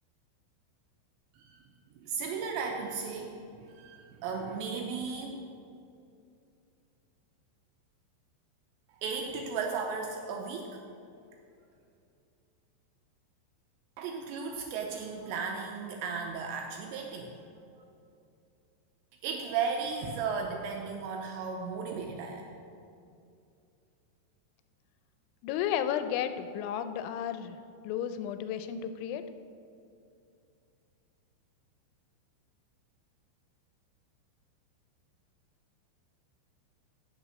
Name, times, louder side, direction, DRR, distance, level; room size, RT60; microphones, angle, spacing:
voice 1, 2.0-5.3 8.9-10.7 14.0-17.4 17.8-17.9 19.2-22.5, right 5 dB, 85° right, 2 dB, 2.6 m, -35 dB
voice 2, 25.4-27.6 27.8-29.2, left 9 dB, 85° left, 10 dB, 2.9 m, -33 dB
8.8 x 6.9 x 6.1 m, 2.5 s
omnidirectional pair, 5.5 m